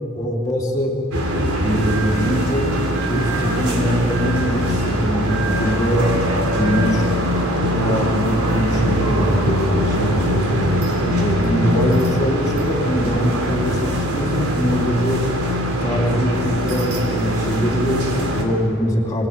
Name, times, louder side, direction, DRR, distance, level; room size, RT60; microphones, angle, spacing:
voice 1, 0.2-0.9 1.6-2.7 3.1-6.1 6.5-7.1 7.7-10.8 11.2-15.2 15.8-19.3, equal, 20° left, -4 dB, 3.7 m, -22 dB
sound 1, 1.1-18.4, equal, 90° right, 3.6 m, -22 dB
25.5 x 17.5 x 9.0 m, 2.9 s
head